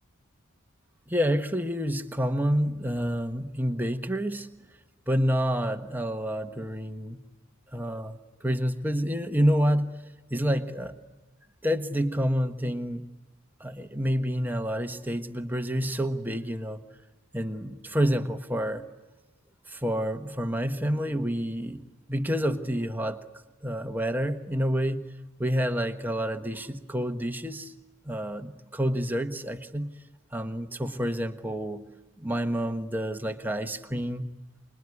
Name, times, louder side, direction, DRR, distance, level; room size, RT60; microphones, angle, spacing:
voice 1, 1.1-4.5 5.1-7.2 7.7-9.9 10.3-11.0 11.6-13.0 13.6-16.8 17.3-18.8 19.7-23.2 23.6-25.1 25.4-27.7 28.0-29.9 30.3-31.8 32.2-34.3, equal, 10° right, 5 dB, 1.3 m, -28 dB
25.5 x 22.0 x 9.7 m, 1.1 s
head